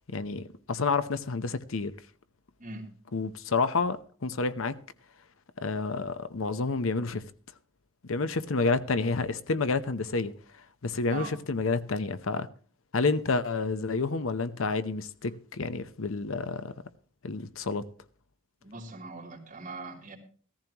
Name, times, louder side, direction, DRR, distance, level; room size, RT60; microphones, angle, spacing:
voice 1, 0.1-1.9 3.1-4.7 5.6-7.2 8.1-12.5 12.9-16.7 17.2-17.9, left 3 dB, 75° left, 0.8 m, -29 dB
voice 2, 18.6-20.2, right 3 dB, 40° right, 3.3 m, -41 dB
16.0 x 14.5 x 2.9 m
head